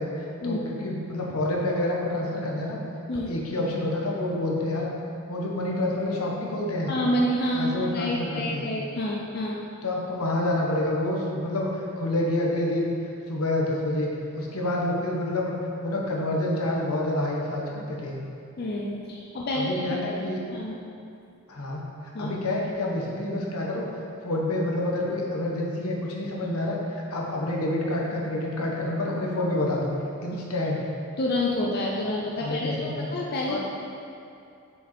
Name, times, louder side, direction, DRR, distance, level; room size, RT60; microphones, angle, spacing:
voice 1, 0.0-2.8 3.3-4.9 5.3-6.9 7.5-8.7 9.8-12.9 13.3-14.1 14.3-15.5 15.8-18.2 19.5-20.4 21.5-21.8 22.2-23.9 24.2-29.9 30.2-30.8 32.4-33.1 33.5-33.6, left 1 dB, 75° left, -2 dB, 1.1 m, -28 dB
voice 2, 6.9-9.6 18.6-20.0 20.5-20.8 22.1-22.3 31.2-33.7, left 1 dB, 45° left, -3 dB, 0.5 m, -28 dB
6.7 x 5.1 x 4.3 m, 2.6 s
head